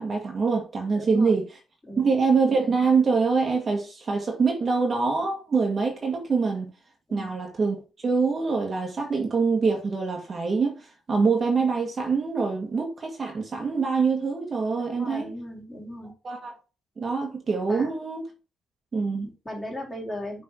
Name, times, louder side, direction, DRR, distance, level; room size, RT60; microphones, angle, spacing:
voice 1, 0.0-1.5 2.0-6.7 7.1-7.8 8.0-15.3 16.2-16.5 17.0-18.3 18.9-19.3, right 4 dB, 40° right, 1.8 m, -24 dB
voice 2, 1.0-1.4 1.8-2.1 7.1-7.3 14.9-16.1 17.7-17.9 19.2-20.4, left 1 dB, 20° left, 3.8 m, -37 dB
6.1 x 4.1 x 4.5 m
cardioid pair, 90°, 0 cm